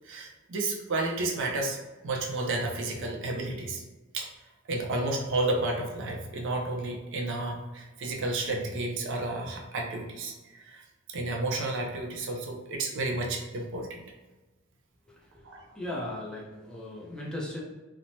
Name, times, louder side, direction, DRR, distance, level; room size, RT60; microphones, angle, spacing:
voice 1, 0.1-1.8 2.0-3.8 4.1-4.3 4.7-10.8 11.1-14.0 15.5-15.6, right 2 dB, 60° right, 1 dB, 0.5 m, -31 dB
voice 2, 15.7-17.6, left 1 dB, 5° left, -5 dB, 0.5 m, -36 dB
3.1 x 2.0 x 2.6 m, 1.2 s
head